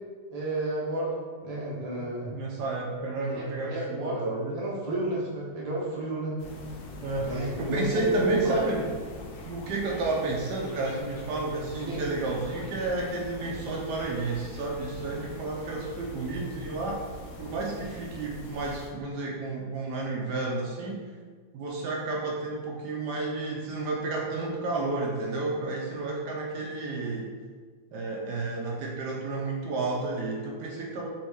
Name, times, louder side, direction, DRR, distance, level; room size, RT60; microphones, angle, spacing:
voice 1, 0.3-2.3 3.3-4.2 4.5-6.3 7.1-8.7 11.9-12.0, right 1 dB, 45° right, -5 dB, 0.4 m, -32 dB
voice 2, 2.3-4.6 7.0-8.9 9.4-17.0 17.4-21.0 21.5-27.3 27.9-31.1, right 2 dB, 75° right, -1 dB, 1.1 m, -31 dB
sound 1, 6.4-18.9, left 2 dB, 80° left, 1.3 m, -43 dB
4.2 x 3.1 x 3.4 m, 1.5 s
omnidirectional pair, 2.1 m